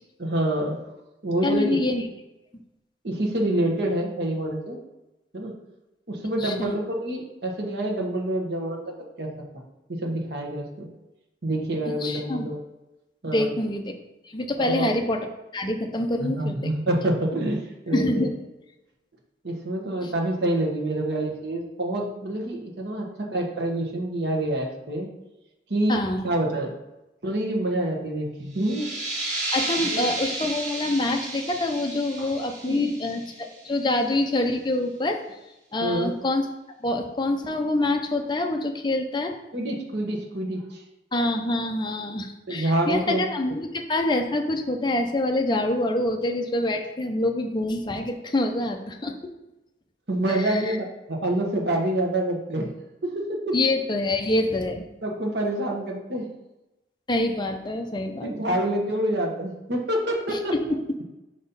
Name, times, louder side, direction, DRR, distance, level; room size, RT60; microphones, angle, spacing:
voice 1, 0.2-0.8 1.2-1.8 3.0-4.8 5.3-5.5 6.1-9.3 9.9-10.9 11.4-12.6 13.2-13.5 14.6-14.9 16.2-18.3 19.4-25.1 25.7-26.0 26.2-26.7 27.2-28.9 29.9-30.1 32.2-32.3 32.6-32.9 35.8-36.1 39.5-40.8 42.5-43.3 50.1-52.7 53.0-53.5 55.0-56.3 58.2-60.7, right 1 dB, 70° right, 0 dB, 1.3 m, -27 dB
voice 2, 1.4-2.0 6.4-6.8 12.0-12.5 13.3-13.9 14.2-15.3 15.5-16.7 17.9-18.3 20.0-20.1 25.9-26.3 29.5-35.2 35.7-36.5 36.8-39.3 41.1-49.1 50.3-50.8 53.5-54.9 57.1-58.6 60.3-60.6, left 2 dB, 25° left, 3 dB, 0.6 m, -26 dB
sound 1, 28.5-33.9, right 2 dB, 40° right, 1.6 m, -32 dB
5.2 x 4.2 x 5.4 m, 0.97 s
head